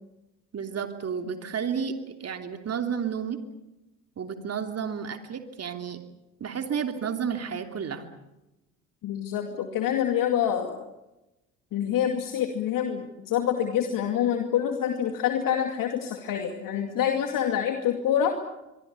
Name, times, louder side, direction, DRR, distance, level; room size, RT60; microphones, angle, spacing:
voice 1, 0.5-3.4 4.2-6.0 6.4-8.0, right 7 dB, 40° right, 6 dB, 2.9 m, -31 dB
voice 2, 9.0-10.9 11.7-18.4, left 9 dB, 55° left, 5 dB, 2.4 m, -26 dB
25.5 x 24.0 x 7.1 m, 0.98 s
figure-of-eight pair, 55°, 40 cm